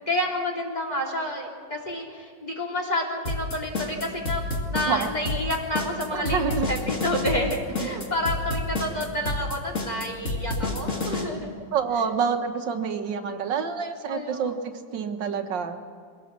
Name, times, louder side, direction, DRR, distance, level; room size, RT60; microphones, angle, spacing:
voice 1, 0.1-4.4 4.7-11.5 14.1-14.5, left 1 dB, 20° left, -1 dB, 3.1 m, -29 dB
sound 1, 3.3-11.2, left 2 dB, 40° left, 2.7 m, -29 dB
voice 2, 6.1-6.7 11.7-14.5 14.9-15.8, right 6 dB, 75° right, 6 dB, 1.9 m, -27 dB
23.0 x 17.0 x 7.4 m, 2.1 s
omnidirectional pair, 2.0 m